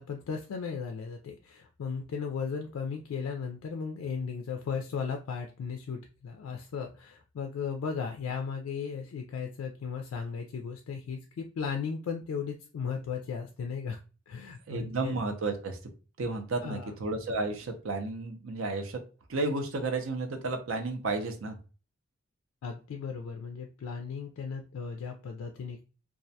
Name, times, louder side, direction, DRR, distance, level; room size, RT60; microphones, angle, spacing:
voice 1, 0.0-15.2 16.6-16.9 22.6-25.8, left 6 dB, 85° left, 4 dB, 0.3 m, -36 dB
voice 2, 14.7-15.8 16.2-19.0 19.3-21.6, right 3 dB, 75° right, 6 dB, 0.5 m, -32 dB
2.3 x 2.1 x 2.6 m, 0.34 s
head